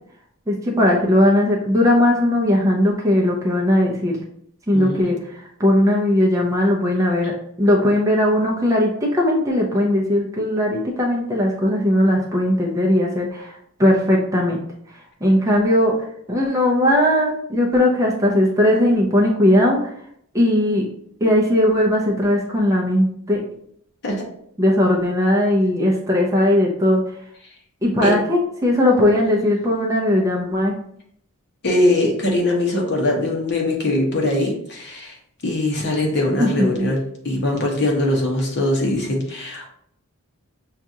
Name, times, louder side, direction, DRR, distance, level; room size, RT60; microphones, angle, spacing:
voice 1, 0.5-4.1 4.7-7.3 7.6-14.6 14.9-15.9 16.3-19.9 20.3-20.9 21.2-23.4 24.6-27.0 27.8-30.7 36.4-36.7, left 1 dB, 15° right, -2 dB, 0.5 m, -18 dB
voice 2, 4.7-5.1 24.0-24.2 28.0-28.1 31.6-35.2 35.4-37.0 37.2-39.7, left 1 dB, 50° left, 0 dB, 1.0 m, -21 dB
5.8 x 2.4 x 2.7 m, 0.68 s
head